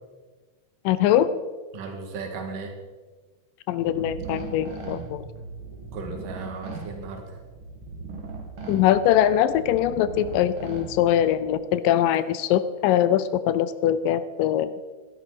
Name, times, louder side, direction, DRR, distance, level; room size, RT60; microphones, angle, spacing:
voice 1, 0.9-1.3 3.7-5.2 8.7-14.7, left 11 dB, 85° left, 14 dB, 2.3 m, -22 dB
voice 2, 1.7-2.8 5.9-7.4, right 4 dB, 75° right, 3 dB, 3.3 m, -36 dB
sound 1, 3.8-11.5, right 4 dB, 45° right, 2.1 m, -38 dB
15.0 x 12.0 x 4.7 m, 1.3 s
omnidirectional pair, 3.9 m